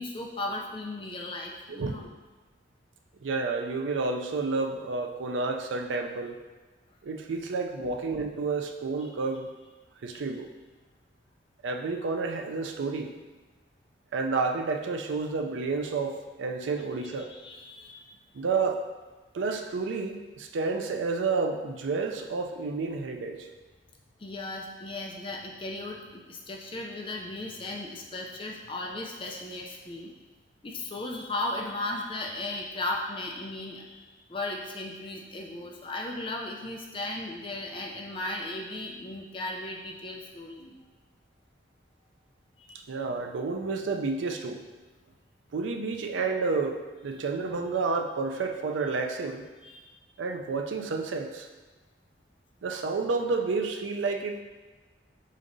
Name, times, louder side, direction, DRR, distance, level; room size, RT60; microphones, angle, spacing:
voice 1, 0.0-2.1 7.8-8.0 10.1-10.2 17.2-18.0 24.2-30.1 30.6-40.8 42.6-42.9 49.6-49.9, left 2 dB, 25° left, 0 dB, 0.4 m, -36 dB
voice 2, 3.2-6.4 7.0-9.5 10.0-10.5 11.6-13.1 14.1-17.3 18.3-18.8 19.3-23.5 42.9-44.7 45.5-49.4 50.2-51.5 52.6-54.4, right 4 dB, 80° right, 3 dB, 0.4 m, -30 dB
5.1 x 3.8 x 2.6 m, 1.3 s
head